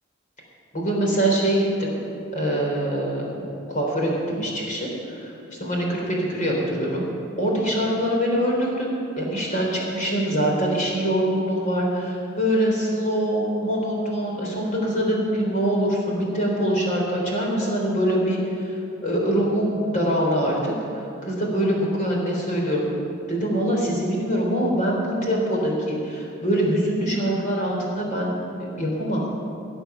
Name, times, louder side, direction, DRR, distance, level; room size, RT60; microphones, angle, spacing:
voice 1, 0.7-2.0 2.3-7.0 7.4-20.7 21.2-22.9 23.3-29.2, equal, 35° left, -2 dB, 3.7 m, -24 dB
18.0 x 8.1 x 7.0 m, 2.8 s
head